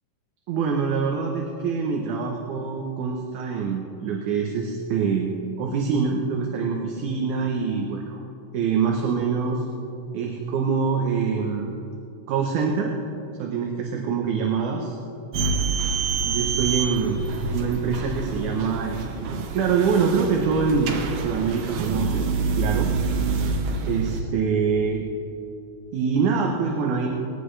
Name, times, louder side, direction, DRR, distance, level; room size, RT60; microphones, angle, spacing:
voice 1, 0.5-8.2 8.5-9.6 10.1-11.7 12.3-12.9 13.4-15.0 16.2-21.0 21.2-22.9 23.9-25.1 25.9-27.1, right 5 dB, 70° right, 0 dB, 2.3 m, -25 dB
sound 1, 15.3-24.2, right 4 dB, 85° right, 2.9 m, -27 dB
20.0 x 16.0 x 3.3 m, 2.9 s
omnidirectional pair, 4.0 m